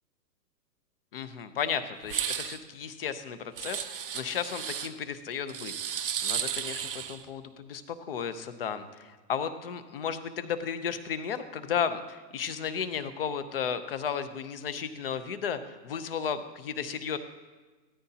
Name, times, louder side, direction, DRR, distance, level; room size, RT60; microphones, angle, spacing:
voice 1, 1.1-17.2, left 7 dB, 35° left, 12 dB, 0.6 m, -34 dB
sound 1, 2.0-2.6 3.6-4.9 5.5-7.2, right 8 dB, 35° right, 0.5 m, -33 dB
17.0 x 13.5 x 2.8 m, 1.3 s
hypercardioid pair, 170°, 50 cm